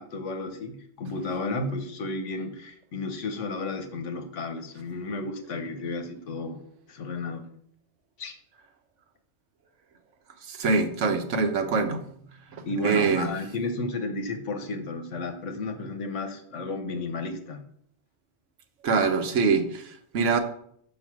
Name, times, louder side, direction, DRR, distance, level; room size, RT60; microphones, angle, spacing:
voice 1, 0.0-6.6 6.9-7.4 8.2-8.4 12.6-17.6, left 2 dB, 80° left, 7 dB, 1.3 m, -33 dB
voice 2, 10.5-12.0 12.5-13.3 18.8-20.4, right 4 dB, 85° right, 6 dB, 1.2 m, -24 dB
6.5 x 5.4 x 6.1 m, 0.67 s
omnidirectional pair, 1.2 m